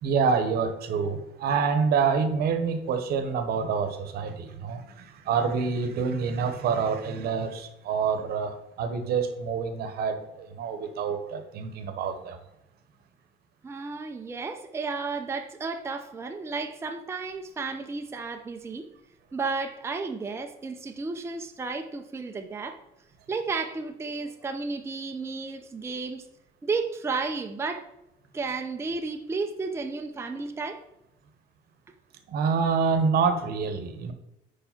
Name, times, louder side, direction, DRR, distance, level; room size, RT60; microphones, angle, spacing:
voice 1, 0.0-12.4 32.3-34.1, right 5 dB, 65° right, 0.9 m, -27 dB
voice 2, 13.6-18.9 19.3-22.8 23.3-26.2 26.6-27.9 28.3-30.8, right 4 dB, 15° right, 0.5 m, -33 dB
4.9 x 4.7 x 5.7 m
cardioid pair, 110°, 17 cm